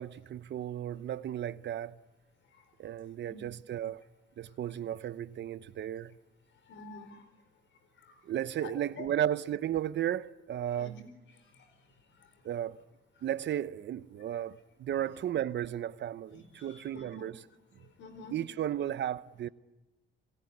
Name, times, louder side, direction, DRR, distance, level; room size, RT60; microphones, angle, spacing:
voice 1, 0.0-2.0 2.8-4.0 4.4-6.1 8.2-11.0 12.4-12.8 13.2-17.4 18.3-19.5, right 11 dB, 65° right, 0.9 m, -34 dB
voice 2, 6.7-7.2 8.0-8.2 8.6-9.1 10.8-11.0 11.4-11.7 12.2-12.3 16.5-17.3 17.8-18.3, left 3 dB, 70° left, 4.4 m, -49 dB
28.0 x 19.0 x 9.9 m
cardioid pair, 90°, 20 cm